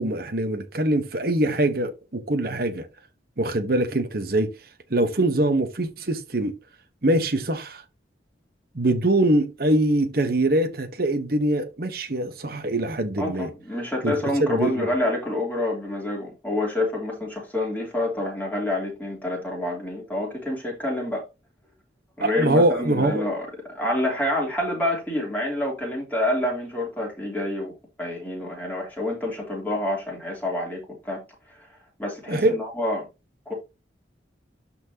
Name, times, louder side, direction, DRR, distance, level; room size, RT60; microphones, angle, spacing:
voice 1, 0.0-2.9 3.4-4.5 4.9-6.5 7.0-7.8 8.7-13.5 14.0-14.1 14.4-14.9 22.2-23.3 32.3-32.6, right 1 dB, 55° right, 1.1 m, -23 dB
voice 2, 13.2-21.2 22.2-27.7 28.0-31.2 32.0-33.1 33.5-33.6, left 1 dB, 10° left, 3.0 m, -27 dB
12.5 x 4.4 x 2.8 m
head